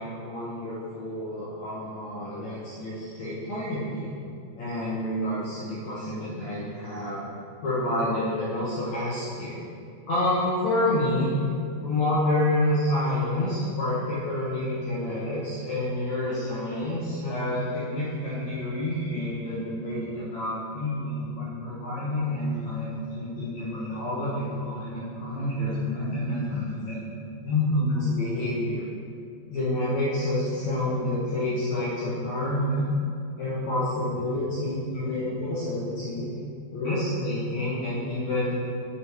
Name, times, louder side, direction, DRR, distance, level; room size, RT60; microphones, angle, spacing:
voice 1, 0.0-4.1 4.5-7.2 7.6-9.6 10.1-11.3 11.8-27.0 27.4-28.8 29.5-32.9 33.4-36.3 36.7-38.5, left 1 dB, 80° left, -9 dB, 1.6 m, -28 dB
8.5 x 7.4 x 3.6 m, 2.5 s
omnidirectional pair, 5.2 m